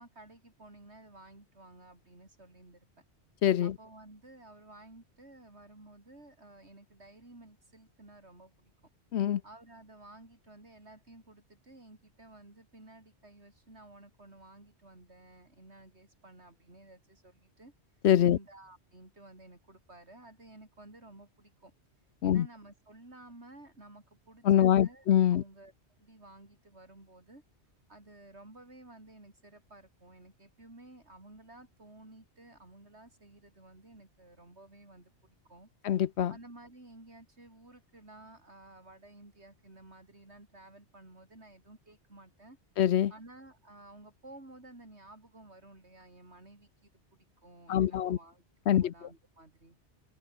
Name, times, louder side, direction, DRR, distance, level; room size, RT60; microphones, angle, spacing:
voice 1, 0.0-2.9 3.6-8.7 9.4-17.7 18.2-21.7 22.2-25.1 25.3-25.7 26.0-27.4 27.9-35.7 36.3-42.6 43.1-48.4 48.7-49.8, right 2 dB, 75° right, 5.8 m, -54 dB
voice 2, 3.4-3.7 9.1-9.4 18.0-18.4 22.2-22.5 24.4-25.4 35.8-36.3 42.8-43.1 47.7-48.2 48.7-48.9, left 10 dB, 75° left, 1.0 m, -24 dB
omnidirectional pair, 1.1 m